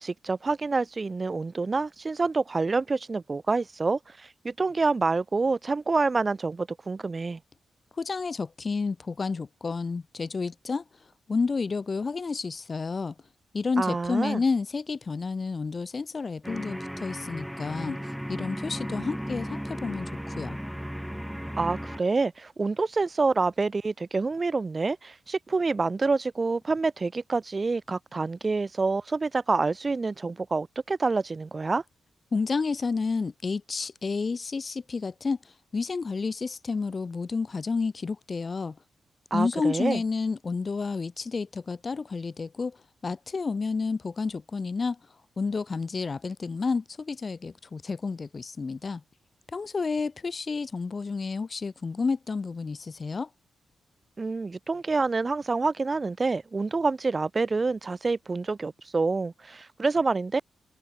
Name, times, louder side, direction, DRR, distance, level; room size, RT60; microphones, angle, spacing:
voice 1, 0.0-7.4 13.8-14.4 21.6-31.8 39.3-40.0 54.2-60.4, right 3 dB, 30° right, 6.2 m, -27 dB
voice 2, 8.0-10.8 11.3-13.1 13.5-20.6 32.3-35.4 35.7-38.8 39.3-45.0 45.4-49.0 49.5-53.3, left 4 dB, 35° left, 3.5 m, -30 dB
sound 1, 16.4-22.0, equal, ahead, 4.8 m, -35 dB
cardioid pair, 115°, 0 cm